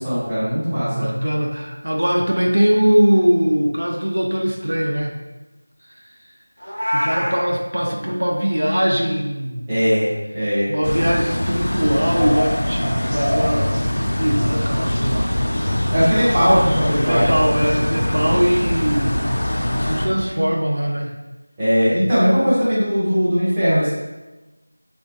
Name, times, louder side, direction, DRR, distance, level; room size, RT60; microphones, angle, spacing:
voice 1, 0.0-1.1 9.7-10.7 15.9-17.3 18.2-18.4 21.6-24.0, equal, 10° right, -13 dB, 0.5 m, -19 dB
voice 2, 0.7-5.1 6.9-9.7 10.7-15.3 17.1-19.2 19.7-21.1, equal, 70° right, 0 dB, 0.4 m, -21 dB
Meow, 6.6-7.4, equal, 90° right, 1.1 m, -23 dB
sound 1, 10.8-20.1, left 1 dB, 50° left, 0.3 m, -22 dB
2.9 x 2.2 x 2.5 m, 1.1 s
figure-of-eight pair, 175°, 0 cm